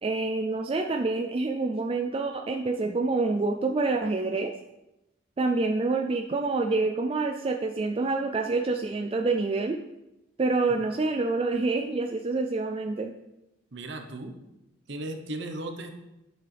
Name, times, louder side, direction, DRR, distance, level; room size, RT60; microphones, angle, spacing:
voice 1, 0.0-4.5 5.4-9.8 10.4-13.1, right 3 dB, 30° right, 4 dB, 0.3 m, -27 dB
voice 2, 13.7-14.3 14.9-15.9, right 2 dB, 60° right, 5 dB, 0.9 m, -36 dB
9.7 x 6.0 x 3.4 m, 0.94 s
head